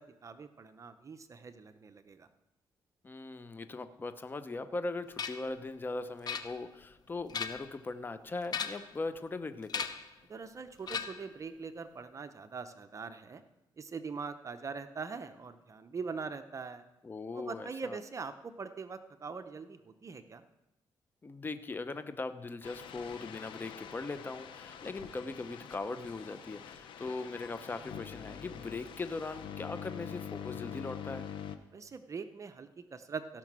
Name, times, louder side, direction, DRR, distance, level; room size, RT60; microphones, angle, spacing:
voice 1, 0.0-2.3 10.3-13.4 13.8-16.8 17.3-20.4 31.7-33.4, right 5 dB, 40° right, 9 dB, 0.7 m, -42 dB
voice 2, 3.0-9.8 17.0-18.0 21.2-31.3, left 3 dB, 25° left, 11 dB, 0.6 m, -40 dB
sound 1, 5.2-5.5 6.3-6.8 7.2-7.8 8.4-9.0 9.7-10.1 10.9-11.4, left 6 dB, 55° left, 0.8 m, -37 dB
sound 2, 22.6-31.6, left 8 dB, 85° left, 0.8 m, -45 dB
16.5 x 5.9 x 6.1 m, 0.95 s
cardioid pair, 95°, 8 cm